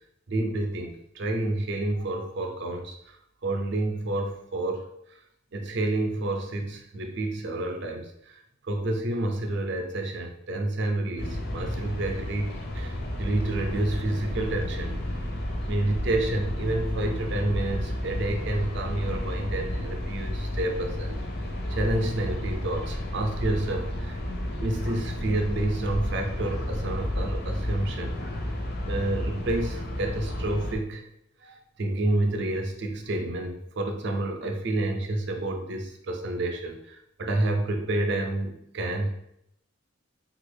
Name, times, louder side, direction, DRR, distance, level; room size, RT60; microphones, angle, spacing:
voice 1, 0.3-3.2 3.4-4.9 5.5-15.0 15.7-21.2 21.7-24.2 24.6-28.1 28.9-31.1 31.4-39.1, right 2 dB, 60° right, 4 dB, 0.5 m, -29 dB
sound 1, 11.2-30.8, left 1 dB, 55° left, 0.5 m, -32 dB
3.2 x 2.4 x 3.2 m, 0.77 s
head